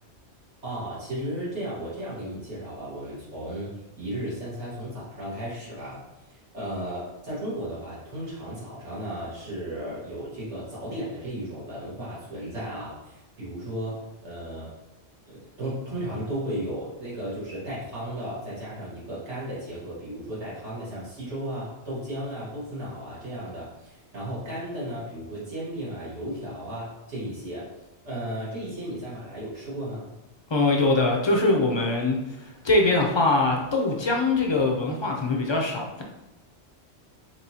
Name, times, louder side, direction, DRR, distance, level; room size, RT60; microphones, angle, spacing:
voice 1, 0.6-3.7 4.0-6.0 6.5-14.0 14.2-14.7 15.3-27.7 28.0-30.0, right 1 dB, 90° right, -8 dB, 1.8 m, -34 dB
voice 2, 30.5-32.2 32.6-36.0, left 2 dB, 45° left, 1 dB, 0.3 m, -22 dB
4.5 x 3.0 x 2.7 m, 0.97 s
omnidirectional pair, 1.1 m